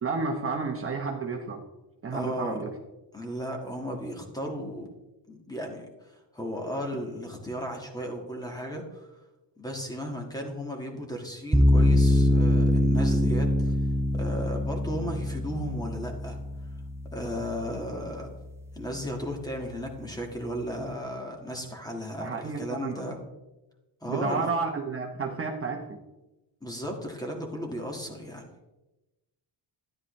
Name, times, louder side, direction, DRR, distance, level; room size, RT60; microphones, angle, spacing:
voice 1, 0.0-1.6 2.0-2.7 22.2-23.2 24.1-26.0, right 4 dB, 30° right, 1 dB, 0.9 m, -31 dB
voice 2, 2.1-2.6 3.1-4.9 5.3-9.1 9.6-13.7 14.1-16.4 17.1-18.3 18.7-23.2 24.0-24.5 26.6-28.5, equal, 10° left, 2 dB, 1.7 m, -35 dB
sound 1, 11.5-18.6, left 1 dB, 5° right, 0.4 m, -24 dB
12.5 x 10.0 x 3.2 m, 1.0 s
cardioid pair, 140°, 43 cm